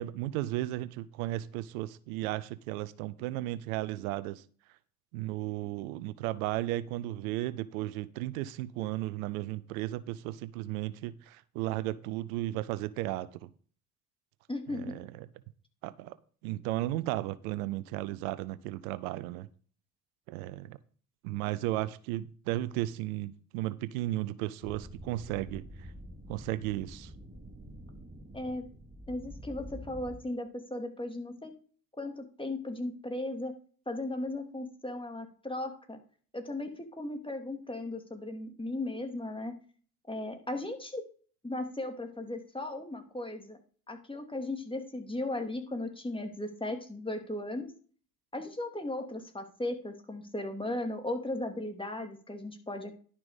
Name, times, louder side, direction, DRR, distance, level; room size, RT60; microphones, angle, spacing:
voice 1, 0.0-4.4 5.1-13.5 14.7-15.3 15.8-16.2 16.4-19.5 20.3-20.8 21.2-25.9 26.3-27.1, right 16 dB, 80° right, 0.6 m, -35 dB
voice 2, 14.5-14.9 28.3-28.7 29.1-31.5 32.0-33.5 33.9-36.0 36.3-39.5 40.1-41.0 41.4-43.6 43.9-47.7 48.3-53.0, left 2 dB, 10° left, 2.9 m, -36 dB
sound 1, 24.6-30.2, equal, 25° right, 2.6 m, -47 dB
11.0 x 5.9 x 5.2 m
hypercardioid pair, 50°, 42 cm